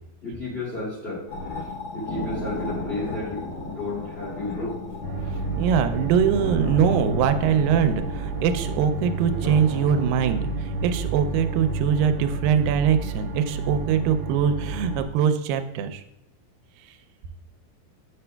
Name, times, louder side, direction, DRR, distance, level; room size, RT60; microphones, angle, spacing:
voice 1, 0.2-1.2 1.9-4.8, left 2 dB, 20° left, -6 dB, 2.1 m, -32 dB
sound 1, 1.3-10.1, left 2 dB, 75° left, 1.2 m, -34 dB
sound 2, 5.0-15.0, right 3 dB, 65° right, 1.2 m, -30 dB
voice 2, 5.6-16.0, right 8 dB, 90° right, 8 dB, 2.3 m, -22 dB
8.2 x 6.9 x 2.2 m, 0.83 s
omnidirectional pair, 4.0 m